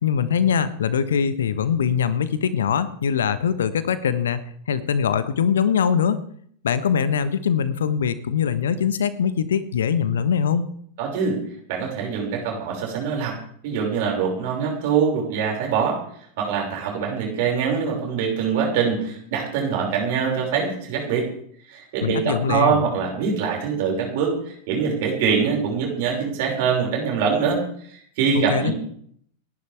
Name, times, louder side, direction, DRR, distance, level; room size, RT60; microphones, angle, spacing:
voice 1, 0.0-4.4 4.7-6.2 6.6-10.6 22.0-22.8 28.3-28.7, left 7 dB, 65° left, 14 dB, 1.2 m, -22 dB
voice 2, 11.0-11.4 11.7-13.4 13.6-16.0 16.4-21.3 21.7-27.6 27.9-28.7, right 6 dB, 50° right, 0 dB, 5.7 m, -23 dB
29.5 x 11.0 x 3.5 m, 0.63 s
figure-of-eight pair, 90°, 0 cm